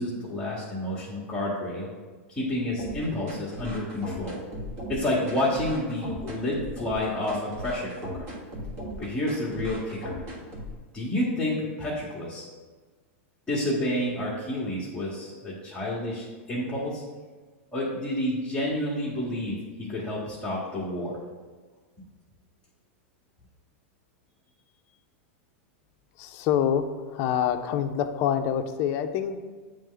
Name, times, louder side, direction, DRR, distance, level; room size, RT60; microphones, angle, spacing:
voice 1, 0.0-1.9 2.3-4.4 4.9-8.3 9.0-10.2 10.9-12.4 13.5-17.0 17.7-21.2, left 1 dB, 10° left, -8 dB, 1.0 m, -29 dB
sound 1, 2.8-10.8, equal, 40° right, 1.4 m, -38 dB
voice 2, 26.2-29.4, left 9 dB, 40° left, 7 dB, 0.4 m, -26 dB
8.1 x 3.2 x 3.8 m, 1.4 s
supercardioid pair, 145°, 7 cm